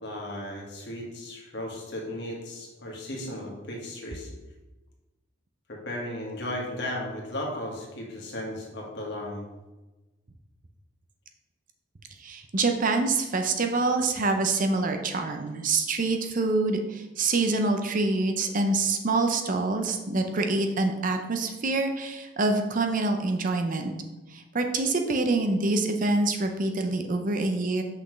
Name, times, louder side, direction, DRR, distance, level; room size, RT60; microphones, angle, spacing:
voice 1, 0.0-4.3 5.7-9.5, left 1 dB, 60° left, -1 dB, 1.6 m, -35 dB
voice 2, 12.2-23.9 24.3-27.8, right 3 dB, 40° right, 5 dB, 0.6 m, -26 dB
6.0 x 5.8 x 3.1 m, 1.1 s
head